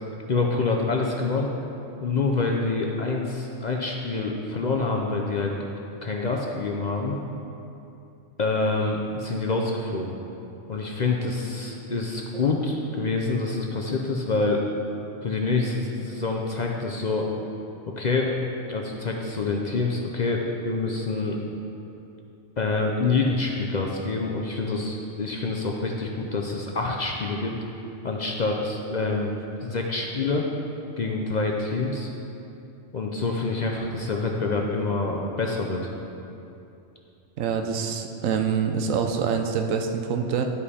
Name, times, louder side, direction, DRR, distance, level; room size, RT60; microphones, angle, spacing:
voice 1, 0.3-1.5 2.0-5.5 6.0-7.2 8.4-10.1 10.7-14.7 15.2-17.3 18.0-18.3 18.7-21.4 22.6-27.5 28.0-29.3 29.6-30.5 31.0-32.1 32.9-35.8, left 3 dB, 50° left, 0 dB, 0.5 m, -26 dB
voice 2, 37.4-40.4, right 6 dB, 85° right, 5 dB, 1.1 m, -25 dB
11.0 x 5.3 x 4.2 m, 2.8 s
omnidirectional pair, 1.3 m